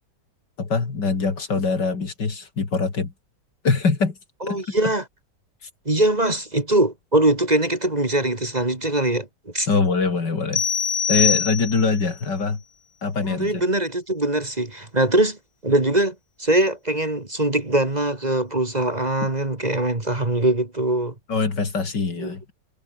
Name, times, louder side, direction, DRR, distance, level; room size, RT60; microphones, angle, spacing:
voice 1, 0.6-3.1 3.6-4.2 4.5-4.8 9.7-10.6 11.1-12.6 13.0-13.7 19.2-19.3 21.3-22.5, left 4 dB, 70° left, 3.8 m, -23 dB
voice 2, 4.4-5.0 5.9-9.7 13.3-21.1 22.2-22.3, right 1 dB, 25° right, 2.4 m, -22 dB
sound 1, 10.5-12.0, left 7 dB, 40° left, 1.1 m, -23 dB
omnidirectional pair, 1.9 m